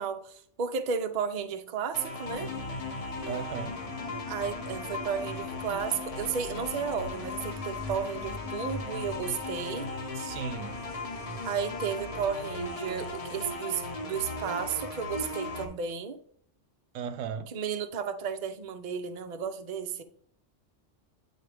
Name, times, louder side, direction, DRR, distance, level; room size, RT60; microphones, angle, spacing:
voice 1, 0.0-2.6 4.3-9.9 11.4-16.2 17.5-20.0, right 7 dB, 45° right, 0.6 m, -33 dB
sound 1, 1.9-15.6, left 2 dB, 35° left, 0.9 m, -37 dB
sound 2, 2.3-14.7, left 10 dB, 75° left, 0.9 m, -46 dB
voice 2, 3.3-3.8 10.2-10.8 16.9-17.5, right 8 dB, 85° right, 0.9 m, -36 dB
9.4 x 4.1 x 3.4 m
omnidirectional pair, 1.2 m